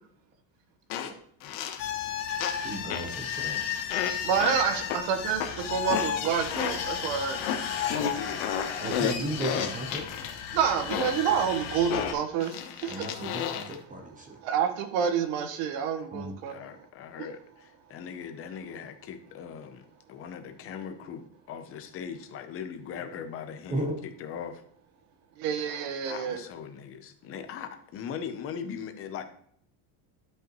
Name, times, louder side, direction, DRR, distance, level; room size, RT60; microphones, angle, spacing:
sound 1, 0.9-1.1 1.4-1.8 2.4-2.6 2.9-3.1 3.9-4.1 4.4-4.6 4.9-5.0 5.4-5.5 5.9-6.1 6.4-6.7 7.4-7.6 7.9-10.3 10.9-11.2 11.9-13.8, left 9 dB, 85° left, 1.1 m, -32 dB
voice 1, 1.4-1.9 8.0-8.4 9.0-9.1 16.0-16.1 16.5-23.9 24.2-24.6 26.0-29.2, left 7 dB, 30° left, 8 dB, 0.7 m, -40 dB
sound 2, 1.8-12.1, left 8 dB, 60° left, 1.4 m, -34 dB
voice 2, 2.6-3.6 8.8-10.1 12.9-14.4 16.1-16.3 23.7-24.0, right 1 dB, 15° right, 3 dB, 0.8 m, -34 dB
voice 3, 4.2-7.4 10.5-13.0 14.4-16.5 25.4-26.4, right 7 dB, 60° right, 8 dB, 1.3 m, -28 dB
11.5 x 5.5 x 3.0 m, 0.66 s
cardioid pair, 170°, 49 cm